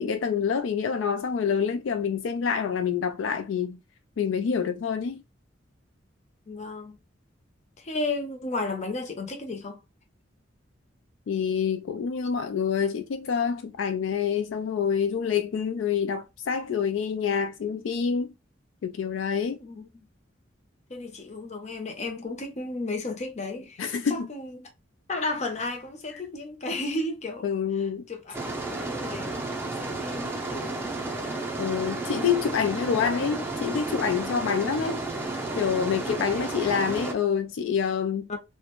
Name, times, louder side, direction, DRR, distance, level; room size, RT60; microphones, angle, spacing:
voice 1, 0.0-3.8 4.2-5.2 11.3-18.3 18.8-19.6 23.8-24.3 26.7-26.8 27.4-28.0 31.6-35.0 35.6-38.3, left 7 dB, 75° left, 0.3 m, -27 dB
voice 2, 6.5-7.0 7.8-9.8 19.6-20.1 20.9-24.7 25.1-27.5 27.7-28.4 28.7-31.0 36.3-36.5 38.3-38.4, left 2 dB, 35° left, 0.6 m, -34 dB
sound 1, 28.3-37.1, right 2 dB, 10° right, 0.5 m, -32 dB
2.4 x 2.1 x 2.9 m
head